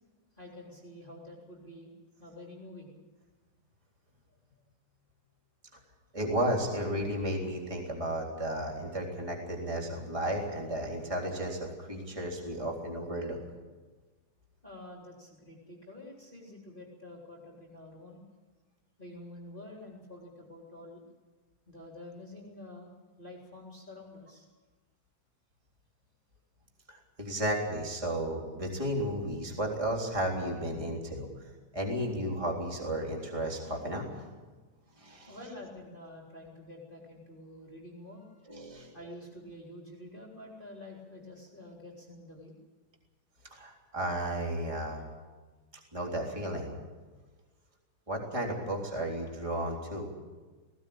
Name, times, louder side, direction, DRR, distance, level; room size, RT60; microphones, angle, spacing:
voice 1, 0.4-1.9 2.2-2.9 14.6-18.2 19.0-21.0 21.7-22.9 23.2-24.5 35.3-38.3 38.9-42.5, left 1 dB, 15° left, -3 dB, 3.4 m, -48 dB
voice 2, 6.1-13.4 26.9-31.3 31.7-34.2 35.0-35.4 38.5-38.9 43.5-45.0 45.9-46.7 48.1-50.1, right 1 dB, 10° right, 0 dB, 3.3 m, -33 dB
19.5 x 17.5 x 8.8 m, 1.3 s
omnidirectional pair, 3.9 m